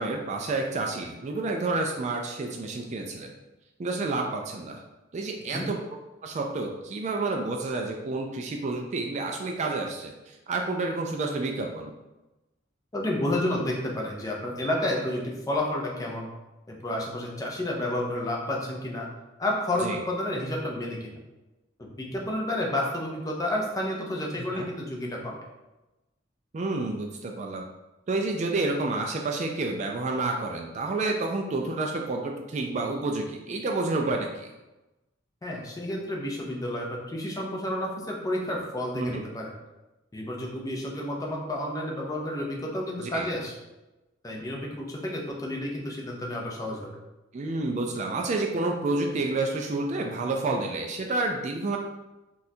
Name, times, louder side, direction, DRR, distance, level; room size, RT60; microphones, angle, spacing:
voice 1, 0.0-3.3 3.8-4.8 5.1-5.8 6.2-11.9 19.8-20.0 24.5-24.7 26.5-27.6 28.1-34.5 38.9-39.1 43.0-43.3 47.3-51.8, right 3 dB, 35° right, 2 dB, 0.3 m, -29 dB
voice 2, 12.9-16.3 16.7-19.1 19.4-21.1 21.8-25.4 35.4-39.5 40.1-43.5 44.2-46.9, left 1 dB, 20° left, -1 dB, 0.5 m, -30 dB
4.1 x 2.4 x 2.7 m, 1.0 s
head